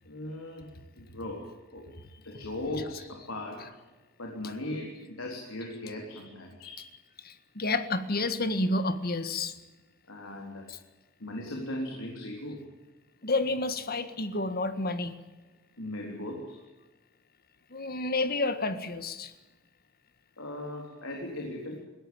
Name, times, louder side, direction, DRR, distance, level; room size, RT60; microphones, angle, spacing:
voice 1, 0.1-0.7 0.9-1.9 2.2-3.7 4.2-6.8 10.1-10.7 11.2-12.7 15.8-16.6 20.4-21.8, left 1 dB, 85° left, 1 dB, 3.9 m, -38 dB
voice 2, 7.2-9.5 10.7-10.8 13.2-15.1 17.7-19.3, left 2 dB, 50° left, 10 dB, 1.7 m, -30 dB
21.0 x 17.0 x 8.9 m, 1.2 s
head